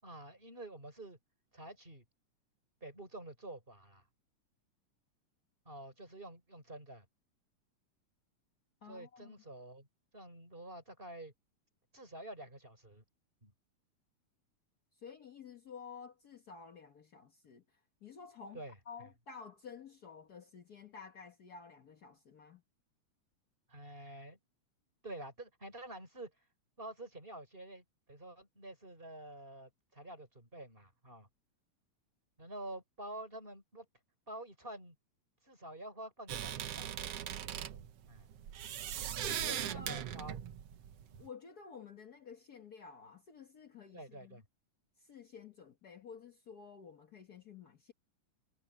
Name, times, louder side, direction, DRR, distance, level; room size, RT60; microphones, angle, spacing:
voice 1, 0.0-1.2 1.5-2.0 2.8-4.0 5.7-7.1 8.8-9.9 10.1-11.3 11.9-13.0 13.4-13.5 18.5-19.1 23.7-24.4 25.0-26.3 26.8-31.3 32.4-33.9 34.3-35.0 35.4-37.0 38.1-38.3 39.2-40.4 41.1-41.2 43.9-44.5, right 1 dB, 15° right, 5.4 m, -48 dB
voice 2, 8.8-9.3 15.0-17.6 18.0-22.6 39.2-40.1 41.2-44.4 45.0-47.9, left 6 dB, 75° left, 0.8 m, -52 dB
sound 1, 36.3-41.3, right 10 dB, 60° right, 1.8 m, -40 dB
omnidirectional pair, 3.7 m